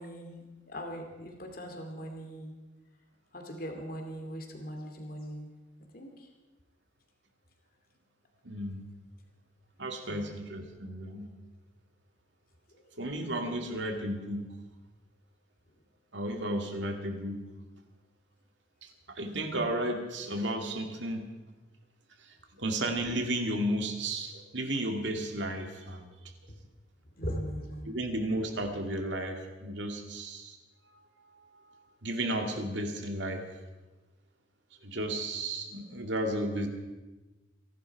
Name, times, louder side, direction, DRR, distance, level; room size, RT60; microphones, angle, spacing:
voice 1, 0.0-2.5 3.3-5.5 5.9-6.3 10.0-10.3 12.7-12.8 27.2-27.9, equal, 50° left, 3 dB, 2.6 m, -40 dB
voice 2, 8.4-8.8 9.8-11.3 13.0-14.5 16.1-17.5 18.8-21.3 22.2-26.1 27.9-30.6 31.3-33.4 34.8-36.7, right 1 dB, 70° right, 4 dB, 2.3 m, -33 dB
26.0 x 11.5 x 4.8 m, 1.2 s
head